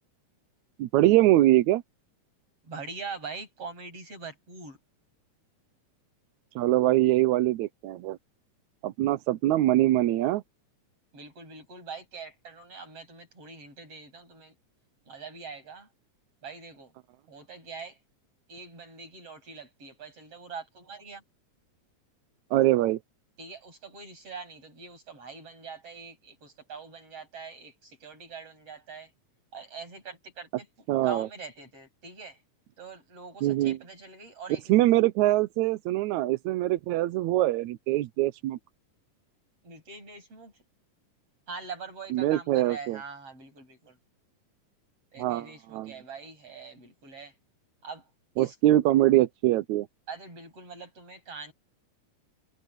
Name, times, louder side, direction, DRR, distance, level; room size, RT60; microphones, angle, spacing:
voice 1, 0.8-1.8 6.6-8.2 8.8-10.4 22.5-23.0 30.9-31.3 33.4-33.8 34.7-38.6 42.1-43.0 45.2-45.9 48.4-49.9, right 15 dB, 80° right, 2.0 m, -23 dB
voice 2, 2.7-4.8 11.1-14.5 15.1-15.9 16.4-16.9 17.3-18.0 18.5-21.2 23.4-29.1 29.5-30.7 31.0-32.4 32.8-34.6 39.6-40.5 41.5-44.0 45.1-47.3 47.8-48.0 48.4-48.5 50.1-51.5, right 4 dB, 50° right, 9.2 m, -43 dB
omnidirectional pair, 3.5 m